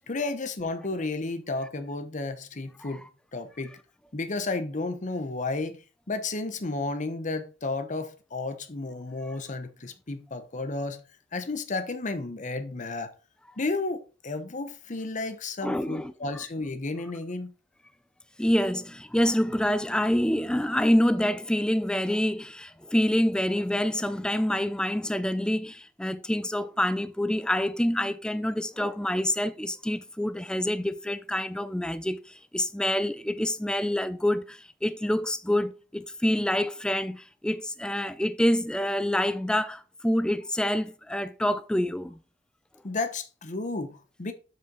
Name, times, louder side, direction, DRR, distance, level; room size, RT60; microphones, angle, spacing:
voice 1, 0.1-3.0 3.3-3.8 4.1-5.8 6.1-11.0 11.3-13.1 13.6-17.5 42.8-44.3, left 3 dB, 40° left, 0.9 m, -32 dB
voice 2, 15.6-16.1 18.4-42.2, left 1 dB, 5° left, 0.3 m, -27 dB
7.7 x 5.7 x 3.8 m
head